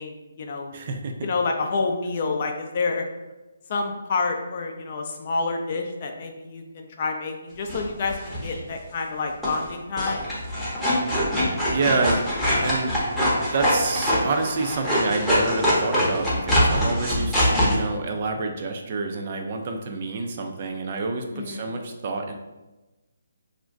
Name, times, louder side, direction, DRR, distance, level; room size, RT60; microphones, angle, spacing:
voice 1, 0.0-0.7 1.2-3.0 3.7-10.3 21.3-21.7, left 4 dB, 40° left, 3 dB, 0.4 m, -28 dB
voice 2, 0.7-1.1 11.7-13.0 13.5-22.4, right 3 dB, 40° right, 3 dB, 0.3 m, -28 dB
sound 1, 7.7-8.6 9.4-9.7 10.0-17.7, equal, ahead, 0.7 m, -23 dB
2.5 x 2.1 x 3.5 m, 1.1 s
hypercardioid pair, 155°, 0 cm